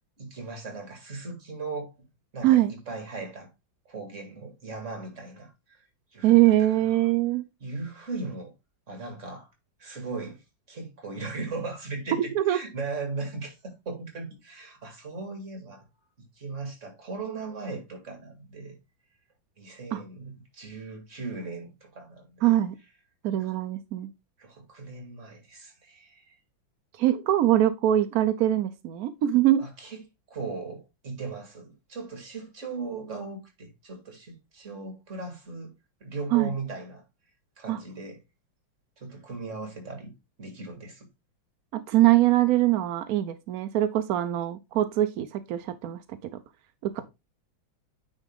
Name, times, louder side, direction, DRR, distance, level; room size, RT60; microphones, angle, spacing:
voice 1, 0.2-1.9 2.3-3.5 3.9-5.9 6.1-6.4 6.7-7.0 7.6-8.5 8.9-9.5 9.8-10.4 10.7-15.8 16.2-18.8 19.6-22.6 23.4-23.5 24.4-26.4 29.6-30.0 30.3-35.7 36.0-37.0 37.6-38.2 39.0-41.1, right 3 dB, 40° right, 2.5 m, -38 dB
voice 2, 2.4-2.7 6.2-7.4 12.4-12.6 19.9-20.0 22.4-22.8 23.2-24.1 27.0-29.6 36.3-36.5 37.7-37.8 41.7-46.0 46.8-47.0, right 14 dB, 70° right, 0.8 m, -23 dB
9.1 x 4.1 x 3.6 m
omnidirectional pair, 2.1 m